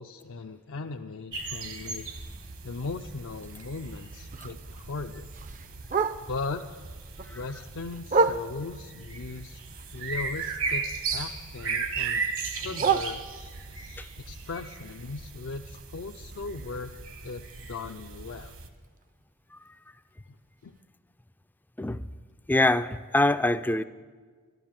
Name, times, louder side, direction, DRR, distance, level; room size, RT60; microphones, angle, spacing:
voice 1, 0.0-2.1 2.6-5.3 6.3-6.6 7.3-9.6 9.9-10.8 11.1-13.2 14.2-16.9 17.2-17.4 17.7-18.5 20.6-20.7, left 3 dB, 60° left, 4 dB, 0.5 m, -38 dB
sound 1, 1.3-18.7, right 4 dB, 65° right, 1.3 m, -37 dB
Bark, 3.4-6.6 7.0-8.9 9.3-11.2 11.4-13.7 14.2-18.1 18.4-18.5 18.8-19.2 19.7-19.8 20.1-20.2 20.7-20.8, right 4 dB, 35° right, 0.5 m, -33 dB
voice 2, 22.5-23.8, left 2 dB, 10° left, 12 dB, 0.4 m, -24 dB
12.5 x 12.5 x 7.5 m, 1.5 s
head